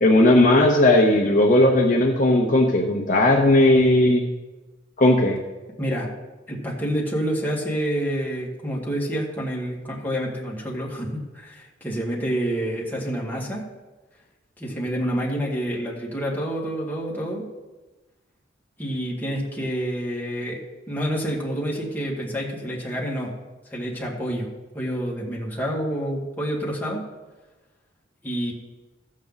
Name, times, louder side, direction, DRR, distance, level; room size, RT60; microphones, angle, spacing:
voice 1, 0.0-4.2 5.0-5.4, left 1 dB, 45° left, 1 dB, 0.9 m, -17 dB
voice 2, 5.8-6.1 6.5-13.6 14.6-17.5 18.8-20.6 20.9-23.3 23.7-24.5 24.7-27.0 28.2-28.5, equal, 10° left, -4 dB, 2.0 m, -28 dB
14.0 x 7.4 x 4.0 m, 1.2 s
head